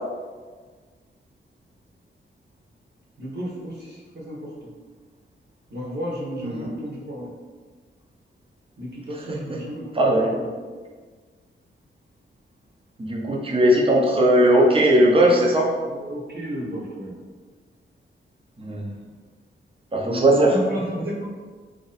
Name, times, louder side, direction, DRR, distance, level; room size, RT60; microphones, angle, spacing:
voice 1, 3.2-4.5 5.7-7.3 8.8-10.5 15.8-17.2 20.0-21.3, equal, 60° right, -4 dB, 1.1 m, -33 dB
voice 2, 9.9-10.3 13.0-15.7 18.6-19.0 19.9-20.5, right 1 dB, 25° right, -2 dB, 0.7 m, -18 dB
3.0 x 2.6 x 4.1 m, 1.5 s
wide cardioid pair, 110°, 20 cm